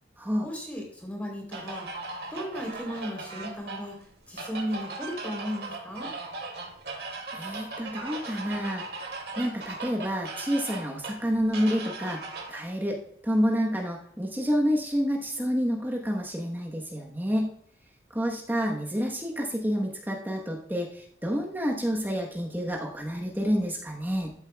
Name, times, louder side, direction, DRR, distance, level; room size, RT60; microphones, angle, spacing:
voice 1, 0.4-1.9 2.3-4.0 4.3-6.1, equal, 10° left, -1 dB, 3.2 m, -35 dB
sound 1, 1.5-12.6, right 3 dB, 65° right, 2.3 m, -38 dB
voice 2, 7.3-8.8 9.4-12.2 12.5-17.5 18.1-24.3, equal, 10° right, -1 dB, 1.0 m, -28 dB
13.5 x 7.3 x 2.3 m, 0.63 s
head